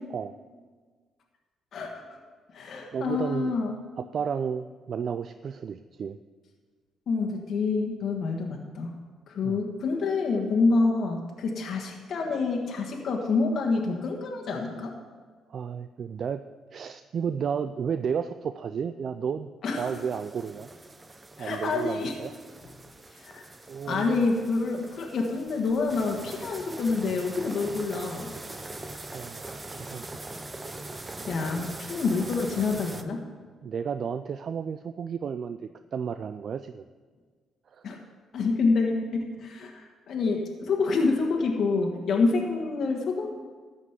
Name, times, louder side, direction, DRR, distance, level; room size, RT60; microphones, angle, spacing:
voice 1, 1.7-2.2 2.5-3.7 7.1-8.9 9.3-14.9 19.6-20.0 21.4-22.1 23.1-23.5 23.9-28.3 31.3-33.2 37.8-38.0 38.3-43.3, left 4 dB, 65° left, 1 dB, 1.4 m, -27 dB
voice 2, 2.9-3.6 4.0-6.2 9.4-9.6 15.5-16.4 16.7-19.5 19.8-20.7 21.4-22.3 23.7-24.2 29.1-30.0 31.6-31.8 33.6-35.6 35.9-36.8 37.7-37.9, right 7 dB, 55° right, 10 dB, 0.4 m, -32 dB
sound 1, 19.7-33.0, right 2 dB, 20° right, 0.8 m, -42 dB
13.5 x 5.2 x 8.1 m, 1.5 s
cardioid pair, 90°, 0 cm